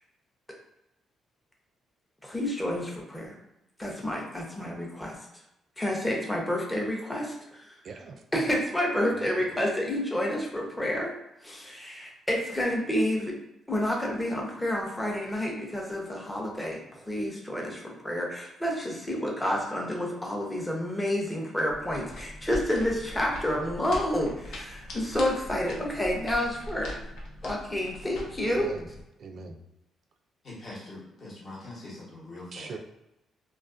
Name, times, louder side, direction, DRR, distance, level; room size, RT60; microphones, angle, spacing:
voice 1, 2.2-3.4 3.8-5.2 5.8-7.8 8.3-11.1 11.4-13.4 13.7-26.9 27.4-28.7, left 1 dB, 10° left, -1 dB, 0.6 m, -29 dB
voice 2, 7.8-8.2 9.2-9.3 28.5-28.9 29.2-29.6 32.5-32.8, right 4 dB, 55° right, 4 dB, 0.3 m, -41 dB
sound 1, 21.7-29.0, left 1 dB, 80° left, 0.5 m, -41 dB
voice 3, 30.4-32.8, left 2 dB, 45° left, -4 dB, 1.0 m, -43 dB
2.3 x 2.3 x 2.4 m, 0.87 s
cardioid pair, 90°, 0 cm